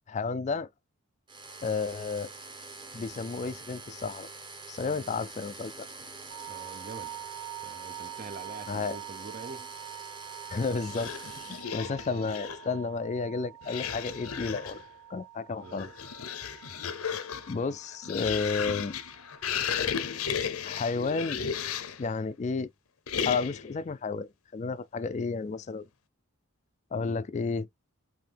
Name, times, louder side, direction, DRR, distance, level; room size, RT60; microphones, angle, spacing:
voice 1, 0.1-0.7 1.6-2.3 2.9-4.3 4.7-5.9 8.7-9.0 10.5-11.1 11.5-14.8 15.1-15.9 17.5-18.9 20.6-21.4 22.0-22.7 23.2-25.8 26.9-27.7, left 4 dB, 30° left, 0.3 m, -32 dB
sound 1, 1.3-11.6, right 3 dB, 20° right, 0.9 m, -45 dB
sound 2, 6.3-20.3, right 17 dB, 85° right, 0.8 m, -46 dB
voice 2, 6.5-7.3 7.6-9.7 12.1-12.3 15.6-15.9 27.0-27.2, right 3 dB, 40° right, 0.5 m, -45 dB
sound 3, 10.8-12.7 13.6-14.9 15.6-22.1 23.1-23.7, left 7 dB, 85° left, 0.7 m, -34 dB
5.5 x 2.8 x 3.4 m
head